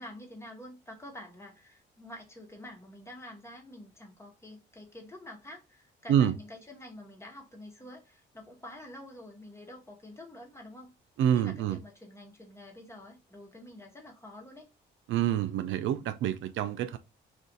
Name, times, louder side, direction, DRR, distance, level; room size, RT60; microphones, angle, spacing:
voice 1, 0.0-10.9 11.3-14.7, left 1 dB, 15° left, 1.1 m, -48 dB
voice 2, 11.2-11.8 15.1-17.0, right 10 dB, 75° right, 0.4 m, -27 dB
2.5 x 2.4 x 3.8 m
cardioid pair, 90°, 20 cm